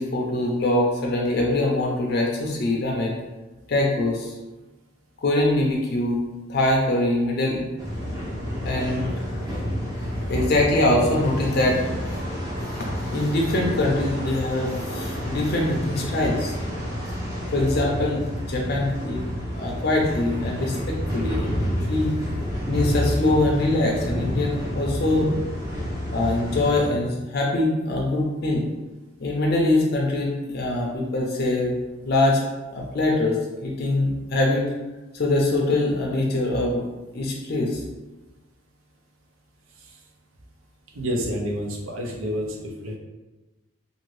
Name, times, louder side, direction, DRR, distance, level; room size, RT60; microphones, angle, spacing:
voice 1, 0.0-3.2 3.7-4.3 5.2-6.2 6.5-7.6 8.6-9.1 10.3-11.8 12.8-16.5 17.5-18.2 18.5-19.2 19.5-21.6 21.9-22.2 22.7-25.3 26.1-28.7 29.2-31.8 32.0-32.4 32.7-34.6 35.1-36.8 37.1-37.8, left 2 dB, 50° left, -1 dB, 0.4 m, -23 dB
sound 1, 7.8-26.9, equal, 15° right, 0.6 m, -29 dB
voice 2, 40.9-43.0, equal, 85° right, 0 dB, 0.6 m, -29 dB
2.6 x 2.6 x 3.1 m, 1.1 s
head